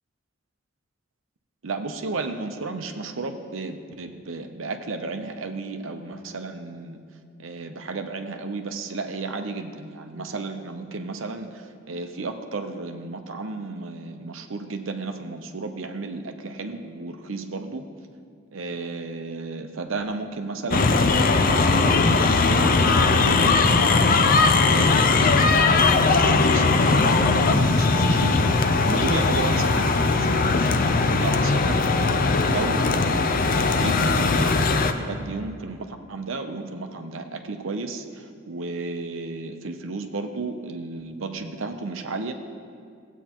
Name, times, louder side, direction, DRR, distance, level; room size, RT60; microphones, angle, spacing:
voice 1, 1.6-7.0 7.4-17.9 18.5-25.6 26.0-33.3 33.7-42.3, right 3 dB, 85° right, 6 dB, 0.7 m, -33 dB
sound 1, 20.7-34.9, left 3 dB, 45° left, 0.5 m, -19 dB
16.0 x 8.2 x 2.9 m, 2.2 s
head